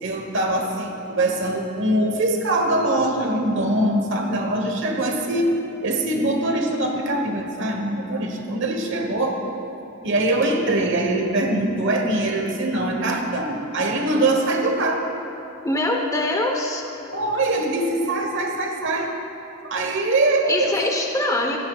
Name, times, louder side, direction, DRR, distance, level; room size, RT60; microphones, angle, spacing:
voice 1, 0.0-9.4 10.0-15.1 17.1-19.2 19.6-20.8, right 1 dB, 55° right, 3 dB, 1.3 m, -23 dB
voice 2, 15.6-16.8 20.5-21.6, left 1 dB, 15° left, 1 dB, 0.9 m, -23 dB
16.5 x 14.0 x 2.4 m, 2.9 s
head